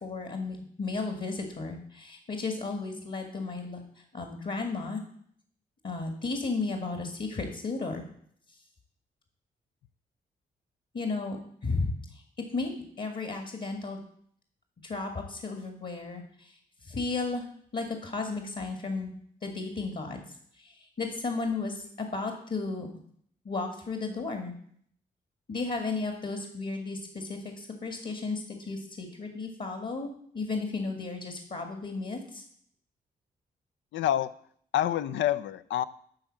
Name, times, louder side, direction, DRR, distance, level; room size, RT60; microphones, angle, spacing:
voice 1, 0.0-3.8 4.1-5.0 5.8-8.0 10.9-11.4 11.6-12.2 12.5-14.0 14.8-17.5 17.7-19.1 19.4-20.2 20.6-22.9 23.5-24.5 25.5-32.4, left 3 dB, 50° left, 4 dB, 1.8 m, -34 dB
voice 2, 33.9-34.3 34.7-35.8, left 12 dB, 85° left, 15 dB, 0.5 m, -27 dB
11.5 x 3.9 x 7.4 m, 0.63 s
cardioid pair, 60°, 19 cm